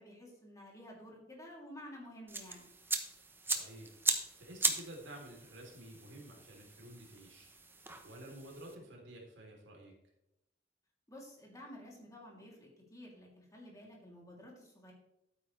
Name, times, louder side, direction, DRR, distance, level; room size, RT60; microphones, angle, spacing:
voice 1, 0.0-2.7 11.1-14.9, left 1 dB, 20° left, -2 dB, 3.0 m, -52 dB
sound 1, 2.3-8.7, right 3 dB, 10° right, 0.9 m, -38 dB
voice 2, 3.5-4.0 4.4-7.5 8.0-9.9, right 1 dB, 85° right, 0 dB, 3.3 m, -51 dB
12.0 x 9.3 x 3.3 m, 0.87 s
head